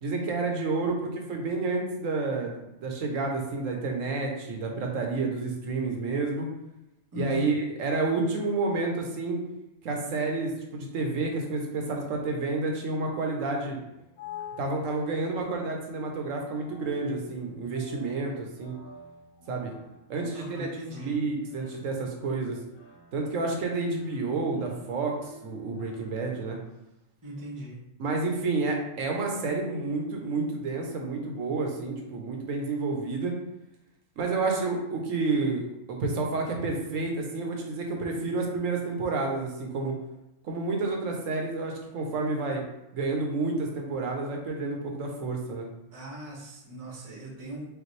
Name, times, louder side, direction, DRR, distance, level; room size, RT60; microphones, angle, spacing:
voice 1, 0.0-6.5 7.2-9.4 9.8-13.8 14.6-18.8 19.5-19.7 20.1-20.7 21.0-22.6 23.1-26.6 28.0-33.3 34.2-35.6 35.9-39.9 40.4-42.6 42.9-45.7, right 3 dB, 75° right, 1 dB, 1.1 m, -30 dB
voice 2, 7.1-7.5 20.3-21.2 27.2-27.8 45.9-47.7, left 1 dB, 20° right, -3 dB, 0.8 m, -38 dB
sound 1, 13.9-26.6, left 2 dB, 90° left, 1.3 m, -48 dB
5.1 x 2.3 x 3.1 m, 0.91 s
omnidirectional pair, 1.4 m